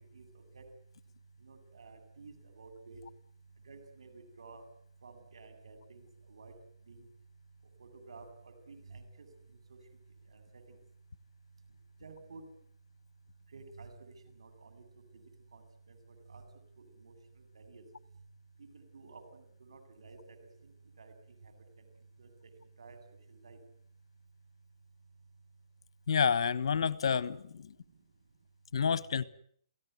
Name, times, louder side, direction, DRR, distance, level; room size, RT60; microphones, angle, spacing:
voice 1, 1.4-3.0 3.7-4.6 5.0-6.5 6.9-7.0 7.8-9.3 9.7-9.8 10.3-10.8 12.0-12.4 13.5-14.8 15.1-15.2 15.5-15.6 15.9-16.0 16.3-16.4 17.0-17.1 17.5-17.8 18.7-20.4 21.0-21.1 21.4-21.5 22.2-22.3 22.8-23.0 23.3-23.6, right 4 dB, 75° right, 7.8 m, -52 dB
voice 2, 26.1-27.7 28.7-29.2, left 6 dB, 65° left, 1.3 m, -29 dB
29.0 x 17.5 x 9.5 m
hypercardioid pair, 145°, 3 cm